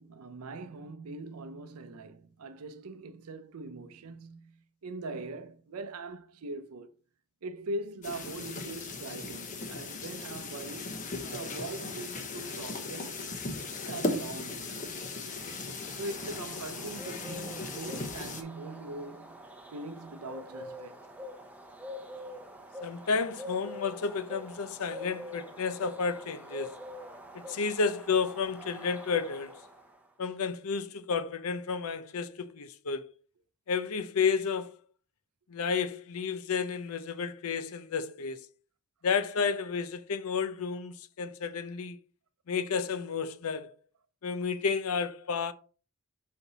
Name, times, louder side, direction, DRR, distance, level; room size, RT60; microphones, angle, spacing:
voice 1, 0.0-6.9 7.4-13.2 13.9-14.8 16.0-21.0, right 2 dB, 80° right, 0.6 m, -41 dB
sound 1, 8.0-18.4, left 3 dB, 35° left, 0.9 m, -37 dB
sound 2, 15.3-30.0, left 1 dB, 5° right, 0.8 m, -45 dB
voice 2, 22.8-26.7 27.3-29.6 30.2-33.1 33.7-34.8 35.5-38.5 39.0-42.0 42.5-43.7 44.2-45.5, left 5 dB, 75° left, 0.6 m, -31 dB
5.5 x 4.4 x 4.0 m
head